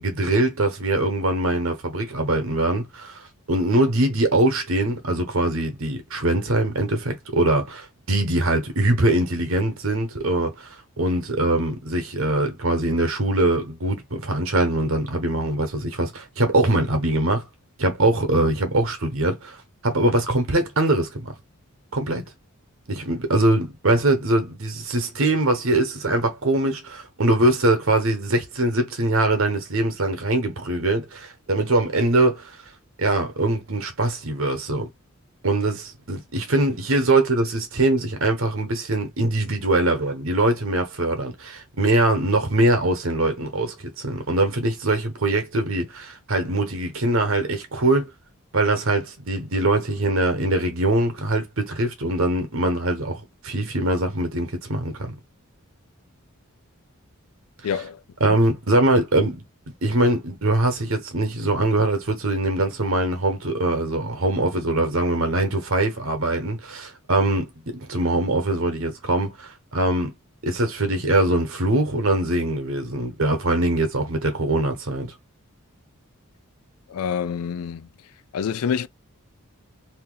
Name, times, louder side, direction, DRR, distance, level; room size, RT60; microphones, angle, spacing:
voice 1, 0.0-3.2 3.5-10.7 11.0-17.4 17.8-19.6 19.8-21.3 21.9-22.2 22.9-32.4 33.0-34.9 35.4-48.1 48.5-55.1 58.2-59.4 59.8-70.1 70.4-75.1, right 2 dB, 65° right, 1.0 m, -22 dB
voice 2, 57.6-58.0 76.9-77.9 78.3-78.9, left 7 dB, 80° left, 0.4 m, -26 dB
2.8 x 2.7 x 3.8 m
head